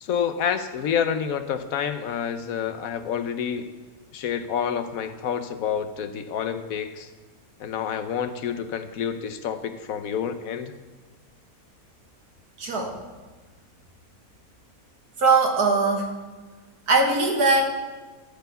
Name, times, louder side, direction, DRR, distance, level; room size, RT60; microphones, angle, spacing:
voice 1, 0.0-3.7 4.1-7.1 7.6-10.8, left 8 dB, 70° left, 10 dB, 1.1 m, -28 dB
voice 2, 12.6-12.9 15.2-16.1 16.9-17.6, right 3 dB, 85° right, 1 dB, 2.2 m, -20 dB
13.5 x 4.6 x 8.1 m, 1.3 s
omnidirectional pair, 1.6 m